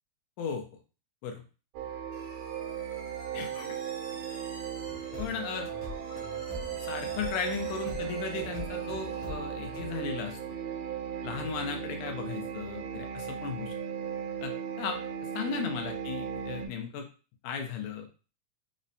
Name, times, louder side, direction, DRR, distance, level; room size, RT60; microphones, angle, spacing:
sound 1, 1.7-16.7, right 8 dB, 90° right, 2.1 m, -37 dB
sound 2, 2.1-9.2, right 2 dB, 65° right, 1.2 m, -49 dB
voice 1, 3.3-3.8 5.2-5.7 6.8-10.4 11.2-13.8 14.4-15.0 15.3-17.1 17.4-18.1, left 6 dB, 85° left, 4 dB, 2.1 m, -36 dB
sound 3, 4.9-9.9, left 3 dB, 70° left, 1.2 m, -44 dB
5.3 x 2.1 x 2.6 m, 0.35 s
omnidirectional pair, 3.4 m